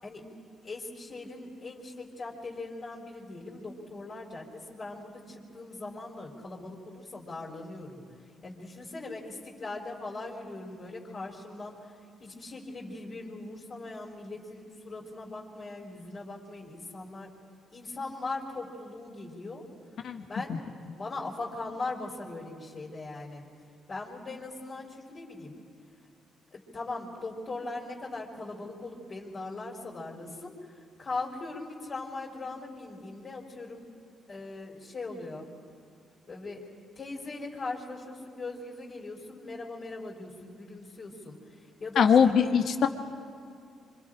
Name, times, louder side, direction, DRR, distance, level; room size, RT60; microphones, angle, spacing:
voice 1, 0.0-0.4 0.6-8.0 8.4-11.9 12.2-17.3 17.7-19.7 20.3-20.6 20.9-23.4 23.9-25.6 26.5-33.9 34.3-35.5 36.3-42.6, left 3 dB, 40° left, -4 dB, 4.3 m, -40 dB
voice 2, 42.0-42.9, left 7 dB, 65° left, 6 dB, 1.6 m, -21 dB
26.0 x 25.5 x 5.0 m, 2.4 s
cardioid pair, 90°, 0 cm